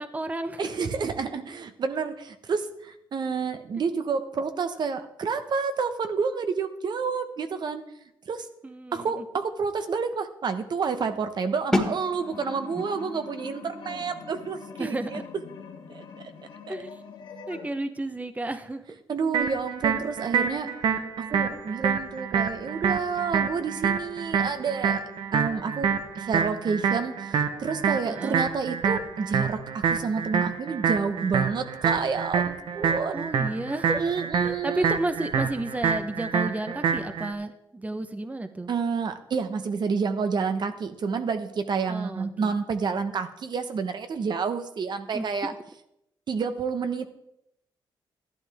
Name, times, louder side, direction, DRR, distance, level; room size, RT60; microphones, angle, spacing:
voice 1, 0.0-0.7 3.8-3.9 8.6-9.2 12.7-12.8 14.8-15.2 16.7-17.0 17.5-19.0 28.1-28.4 33.1-34.0 34.4-38.7 41.9-42.5 45.1-45.3, right 2 dB, 15° right, 9 dB, 0.9 m, -32 dB
voice 2, 0.6-8.5 8.9-15.2 15.9-16.1 16.7-16.8 19.1-20.7 21.2-25.0 25.3-33.3 33.9-34.9 38.7-45.5 46.3-47.1, right 5 dB, 60° right, 8 dB, 1.1 m, -29 dB
sound 1, 11.7-17.4, left 1 dB, 5° left, 1.9 m, -34 dB
sound 2, 12.2-17.7, left 5 dB, 75° left, 2.0 m, -43 dB
sound 3, 19.3-37.3, right 6 dB, 75° right, 1.2 m, -27 dB
13.5 x 11.5 x 3.6 m, 0.81 s
cardioid pair, 80°, 9 cm